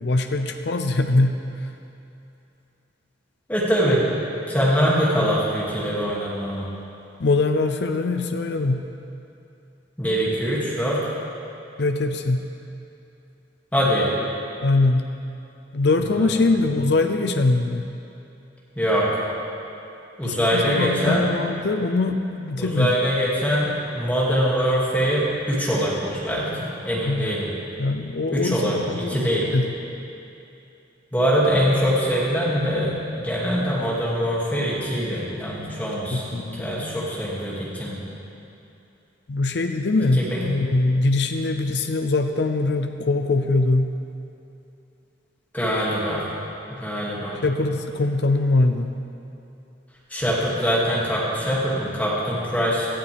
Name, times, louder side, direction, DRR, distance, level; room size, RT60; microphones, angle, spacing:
voice 1, 0.0-1.4 7.2-8.9 11.8-12.5 14.6-15.1 15.7-17.9 20.2-23.0 27.0-27.3 27.8-29.7 36.1-36.7 39.3-44.0 47.4-49.0, left 2 dB, 65° left, 6 dB, 0.6 m, -22 dB
voice 2, 3.5-4.0 4.4-6.7 10.0-11.1 13.7-14.1 16.1-16.4 18.8-19.1 20.2-21.3 22.6-27.5 28.3-29.5 31.1-36.2 36.6-38.0 40.1-40.5 45.5-46.3 46.7-47.4 50.1-52.9, equal, 10° left, -7 dB, 2.5 m, -23 dB
17.5 x 12.5 x 3.5 m, 2.8 s
head